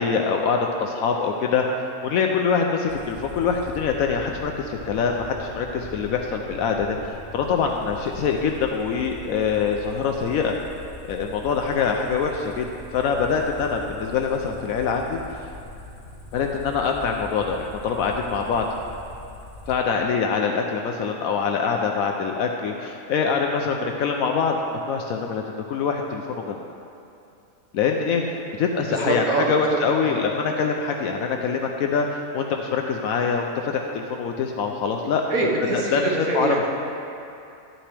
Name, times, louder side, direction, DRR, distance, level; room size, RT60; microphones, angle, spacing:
voice 1, 0.0-1.6 2.0-10.6 11.1-12.7 12.9-15.4 16.3-18.7 19.7-25.4 25.7-26.6 27.7-35.2 35.7-36.6, left 5 dB, 75° left, 2 dB, 1.0 m, -24 dB
sound 1, 2.9-19.7, left 2 dB, 55° left, 1.4 m, -41 dB
voice 2, 28.8-30.2 35.3-36.7, right 3 dB, 75° right, -3 dB, 1.8 m, -25 dB
12.5 x 8.8 x 3.3 m, 2.6 s
omnidirectional pair, 1.5 m